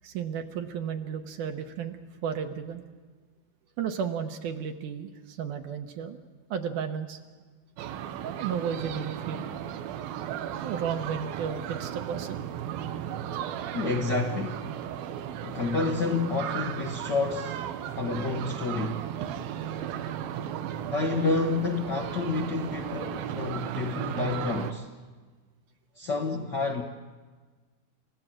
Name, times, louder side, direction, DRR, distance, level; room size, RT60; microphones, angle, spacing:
voice 1, 0.0-2.8 3.8-6.2 6.5-7.2 8.2-9.5 10.6-12.4 13.3-13.4 19.4-19.5, right 7 dB, 70° right, 5 dB, 2.3 m, -33 dB
sound 1, 7.8-24.7, right 10 dB, 85° right, 2.9 m, -35 dB
voice 2, 13.7-14.6 15.4-17.6 18.0-19.1 20.9-24.9 25.9-26.8, left 4 dB, 75° left, 2 dB, 1.0 m, -29 dB
29.5 x 16.0 x 7.6 m, 1.4 s
omnidirectional pair, 4.1 m